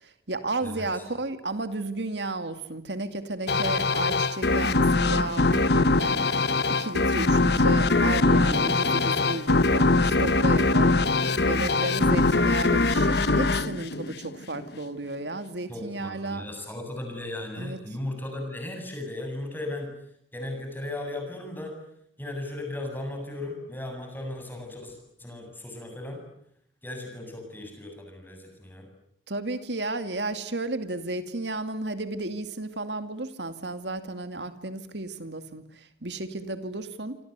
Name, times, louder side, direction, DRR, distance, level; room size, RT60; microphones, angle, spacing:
voice 1, 0.0-6.4 6.7-11.0 11.4-16.5 17.6-17.8 29.3-37.2, right 2 dB, 65° right, 9 dB, 2.5 m, -33 dB
voice 2, 0.6-1.0 15.7-19.9 20.3-21.8 22.2-26.2 26.8-28.9, left 1 dB, 10° left, 4 dB, 8.0 m, -36 dB
sound 1, 3.5-14.7, left 3 dB, 60° left, 1.2 m, -22 dB
27.5 x 26.5 x 8.3 m, 0.72 s
head